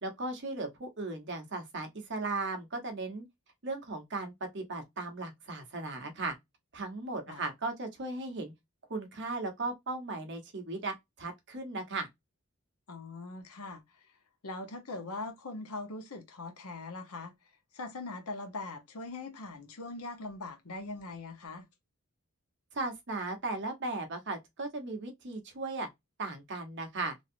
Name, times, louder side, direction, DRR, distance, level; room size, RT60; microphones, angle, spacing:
voice 1, 0.0-3.3 3.6-6.3 6.7-8.5 8.9-12.1 22.7-25.9 26.2-27.1, right 2 dB, 50° right, 1.0 m, -37 dB
voice 2, 12.9-13.8 14.4-17.3 17.7-21.6, left 3 dB, 80° left, 1.0 m, -41 dB
3.1 x 2.7 x 2.5 m
head